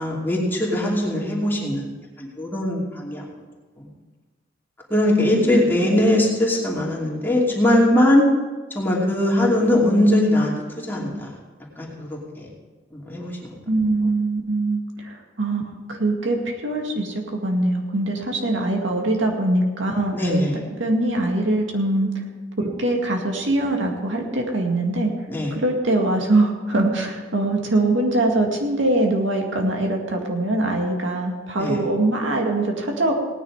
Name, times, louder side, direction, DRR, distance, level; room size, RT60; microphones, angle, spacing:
voice 1, 0.0-1.9 2.2-3.2 4.9-8.2 8.7-10.5 10.9-11.3 11.8-12.4 12.9-13.5 20.1-20.6 25.3-25.5 31.6-31.8, left 1 dB, 10° left, -4 dB, 2.7 m, -20 dB
voice 2, 5.2-5.6 6.0-6.1 13.7-15.6 15.9-20.1 20.5-22.2 22.6-25.1 25.6-33.1, right 2 dB, 75° right, 1 dB, 2.2 m, -22 dB
18.0 x 9.9 x 4.9 m, 1.3 s
head